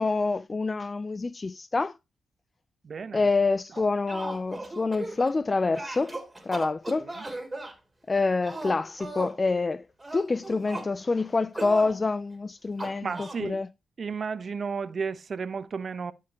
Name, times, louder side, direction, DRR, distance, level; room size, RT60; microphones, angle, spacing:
voice 1, 0.0-2.0 3.1-7.1 8.1-9.8 10.1-13.7, left 3 dB, 35° left, 0.3 m, -27 dB
voice 2, 2.8-3.3 3.7-3.8 6.9-7.3 13.0-13.6 14.0-16.1, right 5 dB, 55° right, 0.8 m, -33 dB
sound 1, 3.8-5.4 5.7-7.7 8.4-9.4 10.0-10.9 11.5-11.9 12.8-13.4, right 2 dB, 20° right, 2.9 m, -37 dB
13.0 x 5.0 x 2.9 m
supercardioid pair, 50°, 0 cm